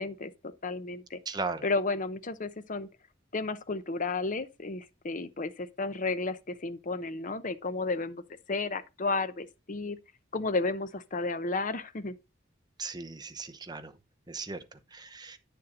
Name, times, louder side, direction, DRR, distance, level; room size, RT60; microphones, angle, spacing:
voice 1, 0.0-1.2 1.6-2.9 3.3-8.2 8.5-10.0 10.3-12.2, left 3 dB, 40° left, 0.8 m, -32 dB
voice 2, 1.3-1.6 12.8-13.9 14.3-15.4, right 4 dB, 20° right, 0.9 m, -37 dB
9.3 x 6.8 x 3.9 m
head